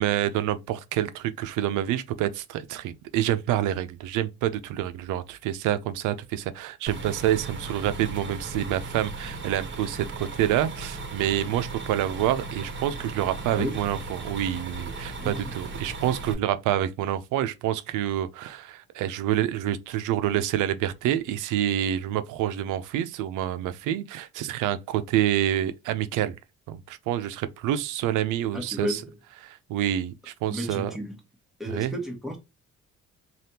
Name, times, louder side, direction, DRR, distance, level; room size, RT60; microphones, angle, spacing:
voice 1, 0.0-26.3 26.7-29.0 29.4-30.9 31.7-31.9, right 12 dB, 90° right, 0.5 m, -27 dB
sound 1, 6.9-16.3, right 3 dB, 40° right, 1.1 m, -37 dB
voice 2, 13.5-13.8 15.2-15.5 28.5-29.1 30.5-31.2 31.6-32.4, equal, ahead, 1.2 m, -32 dB
3.3 x 2.4 x 2.8 m
cardioid pair, 90°, 30 cm